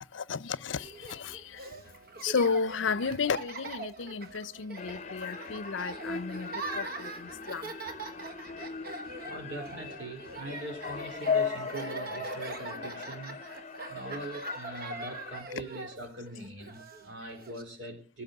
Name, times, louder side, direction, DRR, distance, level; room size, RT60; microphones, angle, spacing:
voice 1, 0.1-1.8 2.2-7.7, left 5 dB, 85° left, 0.6 m, -33 dB
Laughter, 0.8-17.6, right 3 dB, 55° right, 1.3 m, -42 dB
sound 1, 4.8-15.4, left 6 dB, 40° left, 0.7 m, -38 dB
voice 2, 9.3-13.4 13.9-18.2, right 2 dB, 70° right, 4.2 m, -42 dB
16.0 x 7.1 x 8.1 m
head